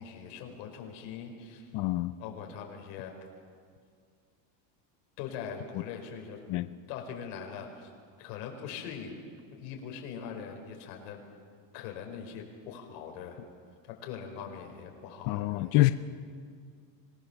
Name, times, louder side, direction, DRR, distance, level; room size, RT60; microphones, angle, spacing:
voice 1, 0.0-1.7 2.2-3.1 5.2-6.4 6.9-7.9 8.2-9.2 9.5-11.2 11.7-13.4 13.8-15.9, left 7 dB, 80° left, 2 dB, 4.8 m, -42 dB
voice 2, 1.7-2.1 6.5-6.7 15.3-15.9, left 18 dB, 45° left, 12 dB, 0.5 m, -26 dB
26.0 x 19.0 x 7.1 m, 2.1 s
cardioid pair, 170°, 49 cm